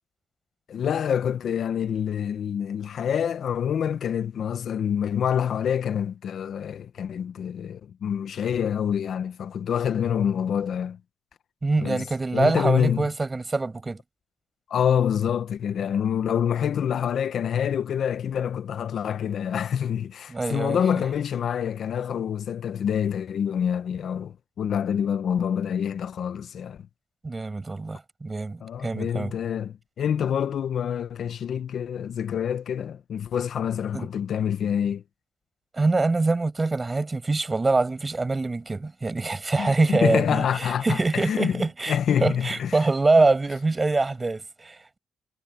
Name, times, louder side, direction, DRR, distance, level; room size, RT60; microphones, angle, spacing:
voice 1, 0.7-11.0 11.8-12.1 12.3-13.1 14.7-26.9 28.6-35.0 39.6-41.6 41.9-42.8 43.2-43.3, left 8 dB, 60° left, 1.2 m, -26 dB
voice 2, 11.6-14.0 20.3-21.0 27.2-29.3 33.9-34.1 35.7-45.0, right 3 dB, 25° right, 6.6 m, -24 dB
cardioid pair, 90°, 0 cm